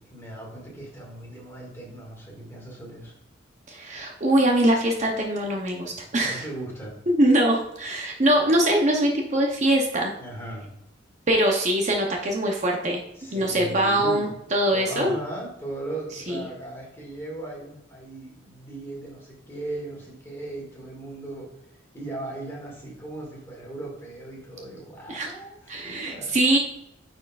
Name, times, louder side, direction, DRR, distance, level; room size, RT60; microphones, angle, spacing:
voice 1, 0.0-3.1 6.2-7.0 10.2-10.7 13.2-14.3 14.7-21.5 21.9-26.4, right 2 dB, 15° left, -3 dB, 2.0 m, -38 dB
voice 2, 3.7-6.4 7.1-10.1 11.3-13.0 13.3-15.2 16.3-16.4 25.1-25.3 25.7-26.6, right 1 dB, 40° right, 1 dB, 0.8 m, -22 dB
9.3 x 4.4 x 2.4 m, 0.81 s
head